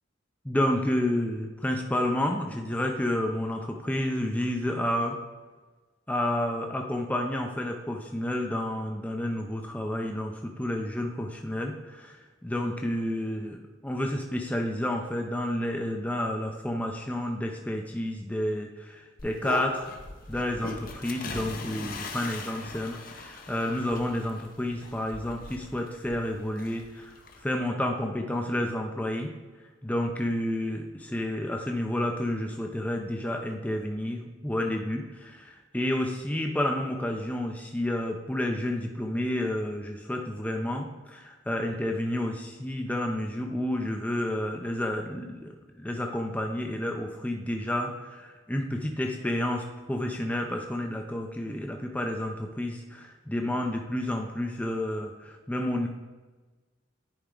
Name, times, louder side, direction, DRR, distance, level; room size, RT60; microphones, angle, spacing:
voice 1, 0.4-5.2 6.1-19.9 20.3-27.1 27.4-29.3 29.8-45.5 45.8-55.9, left 1 dB, 5° left, 2 dB, 0.5 m, -30 dB
sound 1, 19.2-27.4, left 3 dB, 45° left, 0.7 m, -40 dB
10.0 x 4.6 x 3.8 m, 1.3 s
head